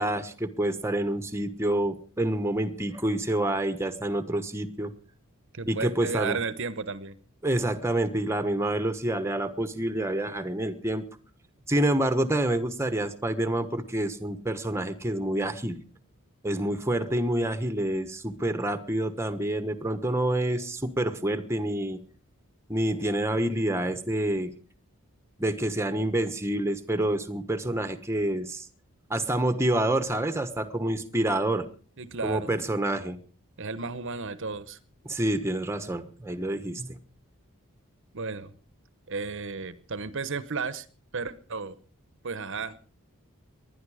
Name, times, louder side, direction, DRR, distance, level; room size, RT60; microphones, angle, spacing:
voice 1, 0.0-4.9 5.7-6.4 7.4-11.1 11.7-15.8 16.4-22.0 22.7-24.5 25.4-28.7 29.1-31.7 32.2-33.2 35.0-36.9, right 1 dB, 10° right, 10 dB, 1.2 m, -27 dB
voice 2, 5.5-7.1 32.0-32.5 33.6-34.8 38.1-38.5 39.1-40.9 41.1-41.7 42.2-42.8, right 4 dB, 60° right, 15 dB, 1.0 m, -33 dB
20.0 x 12.0 x 4.9 m, 0.41 s
head